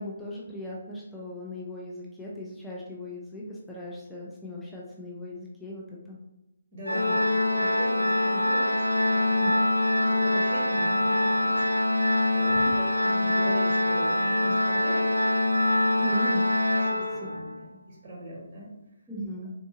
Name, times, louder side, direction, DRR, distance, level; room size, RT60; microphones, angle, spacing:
voice 1, 0.0-6.2 7.0-7.2 9.4-9.5 12.5-12.7 16.0-16.4 17.2-17.3 19.1-19.5, equal, 5° left, -6 dB, 0.5 m, -38 dB
voice 2, 6.7-9.6 9.9-15.1 15.9-16.1 16.7-18.7, equal, 25° right, -5 dB, 1.0 m, -40 dB
Organ, 6.9-17.6, left 1 dB, 85° left, 0.4 m, -24 dB
3.6 x 2.6 x 2.8 m, 0.93 s
figure-of-eight pair, 140°, 0 cm